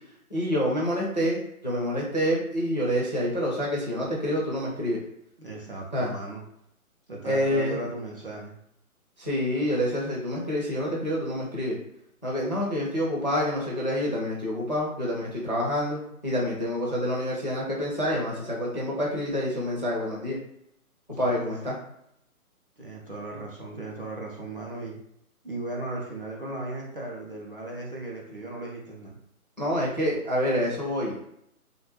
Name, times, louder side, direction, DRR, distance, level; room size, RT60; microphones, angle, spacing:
voice 1, 0.3-5.0 5.9-6.1 7.2-7.8 9.2-11.8 12.2-20.4 21.2-21.8 29.6-31.3, equal, 30° left, -4 dB, 0.4 m, -27 dB
voice 2, 5.4-6.4 7.1-8.5 21.2-21.8 22.8-25.0 25.4-29.2, right 2 dB, 40° right, -3 dB, 0.4 m, -37 dB
2.4 x 2.1 x 3.0 m, 0.74 s
hypercardioid pair, 155°, 44 cm